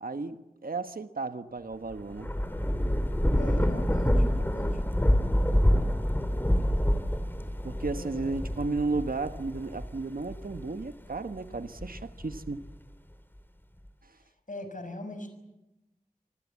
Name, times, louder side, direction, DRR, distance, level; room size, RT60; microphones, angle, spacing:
voice 1, 0.0-2.3 7.6-12.7, right 3 dB, 85° right, 1.3 m, -34 dB
Thunder / Rain, 1.9-10.8 11.4-12.7, equal, 15° left, 2.5 m, -27 dB
voice 2, 3.4-4.8 7.9-8.4 14.5-15.3, left 1 dB, 65° left, 6.0 m, -40 dB
27.0 x 20.0 x 8.4 m
wide cardioid pair, 50°, 15 cm